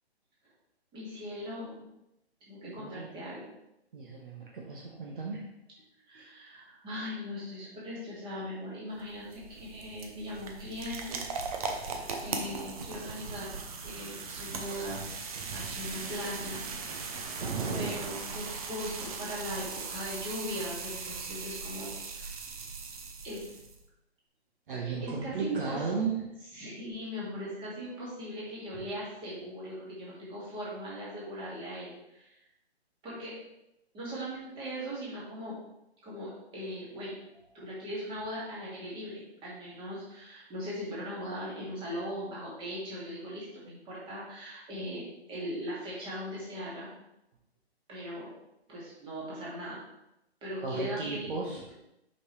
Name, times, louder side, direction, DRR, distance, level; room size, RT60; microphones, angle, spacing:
voice 1, 0.9-1.8 2.5-3.4 6.1-11.2 11.5-13.5 13.8-15.0 15.5-16.6 17.7-22.4 23.2-23.5 25.0-25.8 26.5-32.4 33.0-33.3 33.9-35.6 36.0-37.1 37.5-46.9 47.9-48.3 48.7-49.8 50.4-51.3, equal, 15° right, -7 dB, 2.3 m, -39 dB
voice 2, 2.7-3.1 3.9-5.4 6.1-6.2 17.4-17.9 24.7-26.2 50.6-51.6, right 4 dB, 50° right, -2 dB, 1.4 m, -34 dB
sound 1, 8.9-23.8, right 4 dB, 35° right, 0.8 m, -39 dB
6.3 x 5.6 x 3.3 m, 0.85 s
figure-of-eight pair, 140°, 33 cm